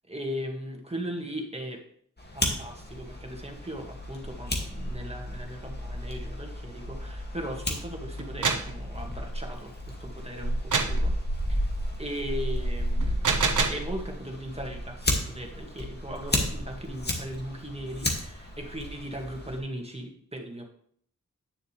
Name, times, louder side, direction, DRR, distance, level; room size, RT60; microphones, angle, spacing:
voice 1, 0.1-1.8 2.3-11.1 11.5-11.6 12.0-13.4 13.7-20.6, equal, 20° right, 1 dB, 2.0 m, -38 dB
Fire, 2.2-19.6, equal, 30° left, 2.1 m, -32 dB
sound 1, 8.2-8.7 10.7-11.0 13.0-13.9, right 5 dB, 75° right, 1.0 m, -26 dB
10.5 x 6.5 x 3.3 m, 0.64 s
cardioid pair, 45°, 31 cm